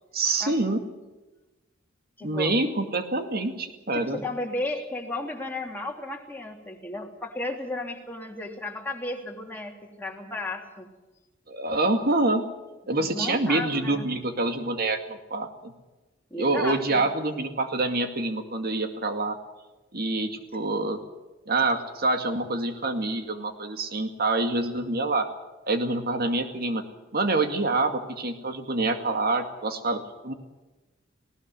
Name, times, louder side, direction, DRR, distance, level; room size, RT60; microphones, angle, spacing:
voice 1, 0.1-0.8 2.2-4.2 11.5-12.4 12.9-15.7 16.4-19.4 19.9-21.0 21.5-25.3 25.7-26.8 27.1-30.3, right 2 dB, 50° right, 6 dB, 2.2 m, -26 dB
voice 2, 2.2-2.5 3.9-10.9 13.0-14.1 16.3-17.0, left 2 dB, 10° left, 0 dB, 3.1 m, -34 dB
19.5 x 18.5 x 8.2 m, 1.1 s
head